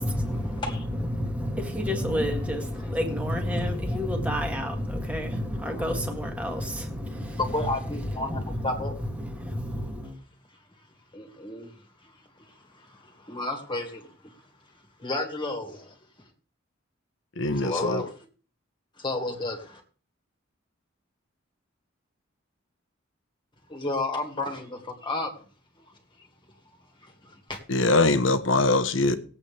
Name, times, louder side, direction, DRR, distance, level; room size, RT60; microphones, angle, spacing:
voice 1, 0.0-10.2, equal, 5° right, 1.9 m, -30 dB
voice 2, 7.4-8.9 11.1-11.7 12.0-12.1 12.8-14.3 15.0-16.0 17.5-18.1 19.0-19.8 23.7-25.3 27.0-27.6, left 2 dB, 25° left, 2.1 m, -32 dB
voice 3, 17.4-18.0 27.7-29.2, left 2 dB, 65° left, 1.2 m, -22 dB
19.5 x 8.3 x 3.5 m
head